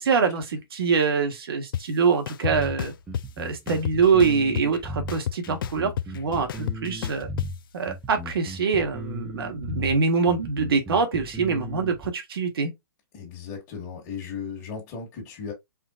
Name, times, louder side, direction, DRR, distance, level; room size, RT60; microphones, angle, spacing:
voice 1, 0.0-2.9 3.4-7.3 7.7-12.7, right 5 dB, 80° right, 1.6 m, -24 dB
sound 1, 1.7-1.8 2.3-3.2 3.7-4.8 5.1-7.5, left 10 dB, 65° left, 0.4 m, -30 dB
sound 2, 2.5-12.1, right 1 dB, 5° right, 0.5 m, -36 dB
voice 2, 13.1-15.5, left 6 dB, 25° left, 1.6 m, -36 dB
4.3 x 3.7 x 2.4 m
hypercardioid pair, 170°, 12 cm